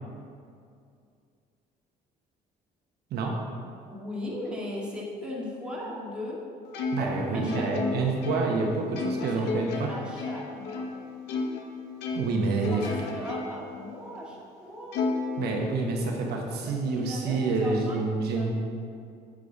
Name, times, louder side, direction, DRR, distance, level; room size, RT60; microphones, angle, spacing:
voice 1, 3.9-6.5 7.0-8.1 9.2-10.9 12.7-15.0 16.6-18.1 18.4-18.5, left 1 dB, 5° right, -6 dB, 2.1 m, -37 dB
Plucked string instrument, 6.7-11.7 12.0-13.7 14.2-14.3 14.9-16.1, left 4 dB, 80° left, 0.9 m, -33 dB
voice 2, 6.9-9.9 12.1-12.9 15.4-18.5, right 3 dB, 70° right, 0 dB, 1.1 m, -28 dB
8.5 x 6.5 x 4.1 m, 2.4 s
cardioid pair, 110°, 17 cm